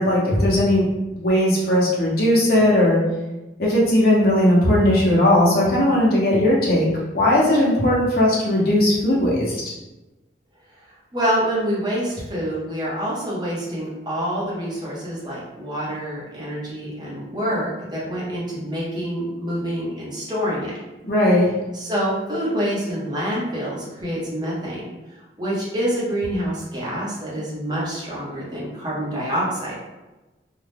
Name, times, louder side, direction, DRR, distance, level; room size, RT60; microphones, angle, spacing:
voice 1, 0.0-3.0 3.6-6.9 7.1-9.6 21.1-21.5, left 1 dB, 55° left, -6 dB, 1.0 m, -18 dB
voice 2, 11.1-20.7 21.7-24.9 25.4-29.8, equal, 25° right, -6 dB, 0.9 m, -26 dB
2.6 x 2.3 x 3.5 m, 1.1 s
head